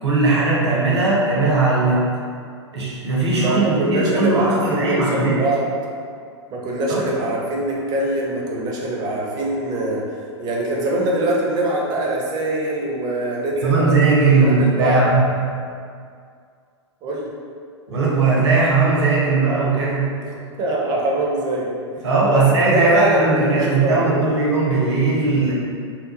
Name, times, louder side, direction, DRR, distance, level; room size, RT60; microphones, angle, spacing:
voice 1, 0.0-2.1 2.7-5.4 6.9-7.1 13.6-15.5 17.9-20.2 22.0-25.5, right 3 dB, 65° right, -5 dB, 0.7 m, -18 dB
voice 2, 3.3-5.7 6.5-10.1 10.4-14.0 14.4-15.0 17.0-17.3 20.3-21.7 22.3-22.4 22.7-24.3, right 1 dB, 25° right, -3 dB, 0.5 m, -23 dB
2.9 x 2.2 x 2.4 m, 2.2 s
figure-of-eight pair, 100°, 15 cm